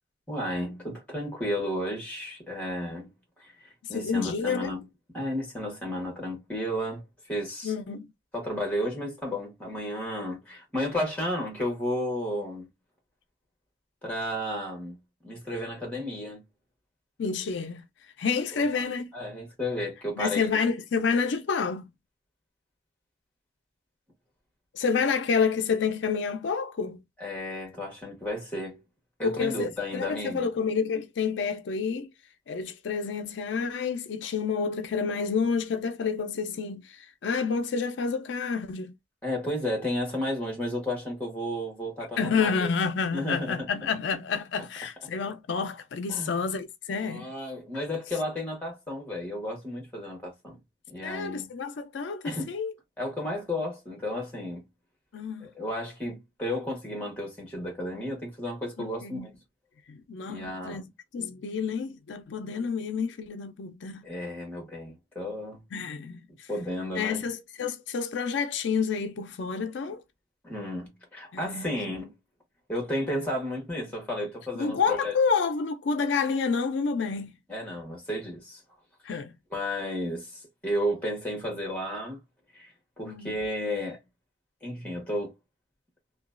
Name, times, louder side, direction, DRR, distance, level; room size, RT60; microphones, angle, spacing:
voice 1, 0.3-3.1 3.4-4.9 5.1-7.0 7.3-7.7 8.3-12.7 14.0-15.0 15.2-16.4 18.5-18.9 19.1-20.5 27.2-28.8 29.2-30.5 39.2-42.7 43.1-43.7 46.1-46.3 46.9-50.6 50.9-51.5 52.2-52.5 53.0-54.6 55.4-59.3 60.3-60.8 64.0-65.6 66.5-67.2 70.4-72.1 72.7-75.1 77.5-78.6 79.1-79.2 79.5-82.2 82.5-84.0 84.6-85.3, left 1 dB, 10° left, 1.3 m, -33 dB
voice 2, 3.9-4.7 7.6-8.1 17.2-17.9 18.2-19.1 20.2-21.9 24.7-27.0 29.2-32.1 32.5-38.9 42.2-47.3 51.0-52.7 55.1-55.5 58.8-59.3 59.9-60.8 61.1-64.1 65.7-66.5 66.9-70.0 71.3-71.7 74.6-77.3 79.0-79.3 83.1-83.4, left 5 dB, 80° left, 0.4 m, -29 dB
2.9 x 2.3 x 2.3 m
head